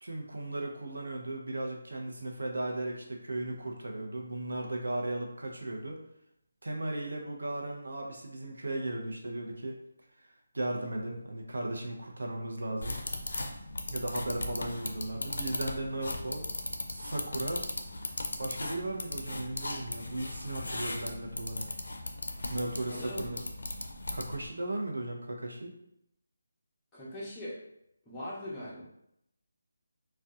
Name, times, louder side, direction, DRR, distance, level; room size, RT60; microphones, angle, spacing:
voice 1, 0.0-6.0 6.6-9.8 10.5-13.0 13.9-16.4 16.9-17.6 18.4-21.7 22.5-23.4 24.1-25.7, right 1 dB, 85° right, 1 dB, 0.6 m, -36 dB
sound 1, 12.8-24.5, left 2 dB, 85° left, 0.4 m, -38 dB
voice 2, 22.9-23.3 26.9-27.6 28.1-28.8, left 1 dB, 5° left, -9 dB, 0.5 m, -40 dB
2.6 x 2.1 x 2.3 m, 0.78 s
figure-of-eight pair, 175°, 0 cm